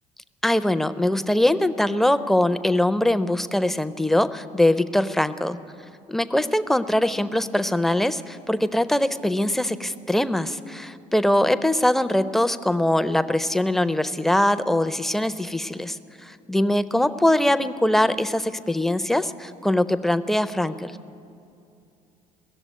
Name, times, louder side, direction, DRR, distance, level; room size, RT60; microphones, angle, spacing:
voice 1, 0.4-5.6 6.1-20.9, left 1 dB, ahead, 13 dB, 0.4 m, -22 dB
16.5 x 7.1 x 9.2 m, 2.6 s
figure-of-eight pair, 60°, 21 cm